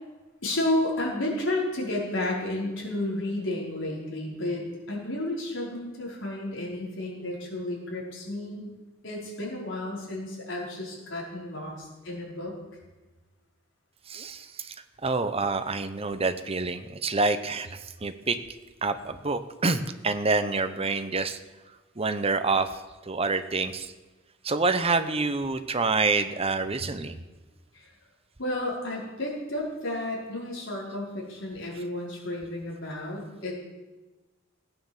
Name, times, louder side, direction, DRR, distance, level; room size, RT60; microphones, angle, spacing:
voice 1, 0.4-8.7 9.0-12.6 27.7-27.9 28.4-33.5, left 1 dB, 70° left, -3 dB, 5.2 m, -32 dB
voice 2, 14.1-14.7 15.0-18.4 18.8-21.4 22.0-22.7 23.1-23.9 24.4-27.1, right 3 dB, 30° right, 10 dB, 0.9 m, -27 dB
17.0 x 9.2 x 7.4 m, 1.2 s
head